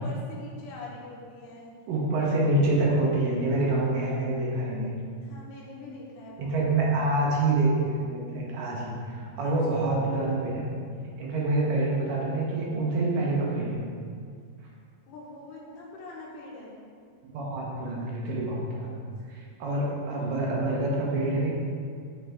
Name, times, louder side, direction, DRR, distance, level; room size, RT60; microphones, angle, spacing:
voice 1, 0.0-1.7 5.2-7.0 9.4-9.6 15.1-16.7, left 2 dB, 65° left, -4 dB, 2.3 m, -43 dB
voice 2, 1.9-4.9 6.4-10.7 11.2-13.8 17.2-18.9 19.3-21.5, right 2 dB, 70° right, -3 dB, 2.2 m, -26 dB
8.8 x 4.0 x 3.5 m, 2.1 s
omnidirectional pair, 4.7 m